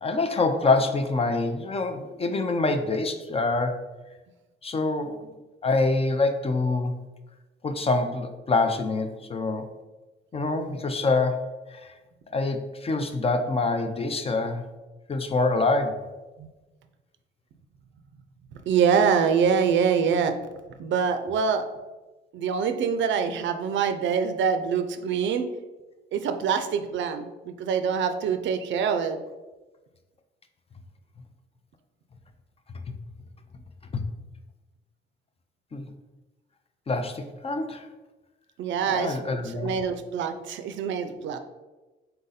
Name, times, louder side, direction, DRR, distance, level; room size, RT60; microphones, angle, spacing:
voice 1, 0.0-3.8 4.6-5.3 5.6-6.9 7.6-9.7 10.3-11.9 12.3-14.6 15.1-16.1 32.9-33.0 33.9-34.1 35.7-35.9 36.9-37.9 38.8-39.7, left 3 dB, 30° left, 6 dB, 0.5 m, -26 dB
voice 2, 18.7-20.4 20.8-21.6 22.3-25.5 26.1-29.2 38.6-41.4, right 6 dB, 70° right, 8 dB, 0.5 m, -25 dB
4.0 x 2.6 x 3.9 m, 1.1 s
cardioid pair, 90°, 20 cm